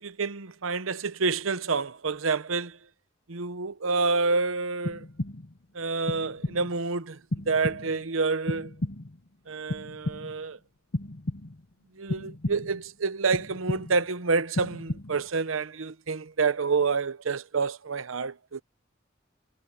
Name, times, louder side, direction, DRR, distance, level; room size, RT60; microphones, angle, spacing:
voice 1, 0.0-2.8 3.3-5.0 5.7-7.2 7.5-8.7 9.5-10.6 12.0-18.6, right 4 dB, 90° right, 0.9 m, -28 dB
sound 1, 4.9-5.6 6.1-6.8 7.3-8.1 8.5-9.3 9.7-10.5 10.9-11.7 12.1-12.9 13.3-14.1 14.5-15.4, left 1 dB, 60° left, 1.1 m, -34 dB
head